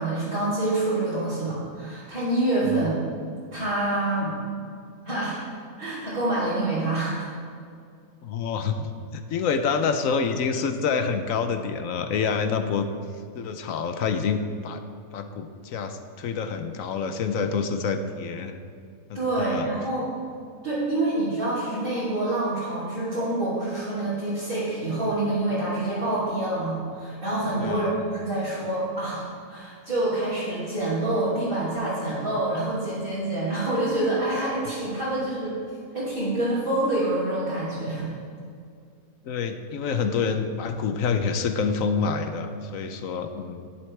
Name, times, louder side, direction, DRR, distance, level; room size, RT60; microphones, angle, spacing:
voice 1, 0.0-2.9 3.5-4.4 5.0-5.4 5.8-7.3 19.1-20.1 20.6-35.6 35.9-38.1, right 2 dB, 60° right, -14 dB, 3.6 m, -26 dB
voice 2, 8.2-12.9 13.3-14.8 15.1-18.6 19.1-19.7 27.6-28.0 39.2-43.7, left 5 dB, 65° left, 8 dB, 1.0 m, -27 dB
11.5 x 11.0 x 3.3 m, 2.3 s
omnidirectional pair, 1.6 m